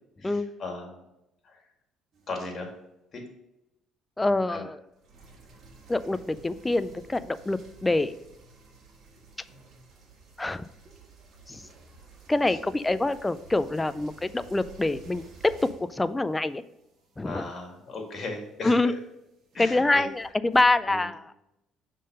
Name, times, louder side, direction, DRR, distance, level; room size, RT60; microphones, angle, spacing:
voice 1, 0.2-1.1 1.4-1.6 2.3-2.7 3.1-3.2 4.5-4.7 12.5-12.6 17.2-18.9 19.5-20.1 20.9-21.1, left 2 dB, 40° left, 2 dB, 2.0 m, -37 dB
sound 1, 2.1-2.7 4.9-20.6, right 4 dB, 55° right, 1.6 m, -53 dB
voice 2, 4.2-4.8 5.9-8.2 10.4-10.6 11.5-11.6 12.3-16.6 17.2-17.4 18.6-18.9 19.6-21.3, left 2 dB, 15° left, 14 dB, 0.4 m, -25 dB
6.4 x 3.8 x 5.5 m, 0.87 s
cardioid pair, 95°, 0 cm